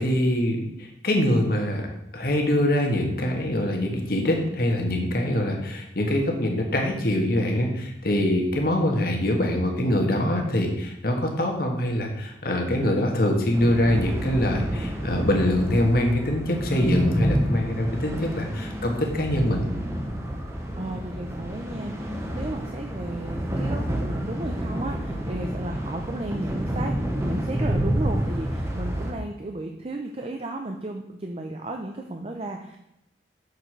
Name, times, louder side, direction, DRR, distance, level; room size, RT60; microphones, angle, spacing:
voice 1, 0.0-1.9 2.1-19.6, left 1 dB, 60° left, 2 dB, 1.5 m, -24 dB
sound 1, 13.5-29.1, equal, 15° right, 0.9 m, -29 dB
voice 2, 20.8-32.8, right 2 dB, 35° right, 3 dB, 0.6 m, -34 dB
6.7 x 4.8 x 6.1 m, 0.84 s
head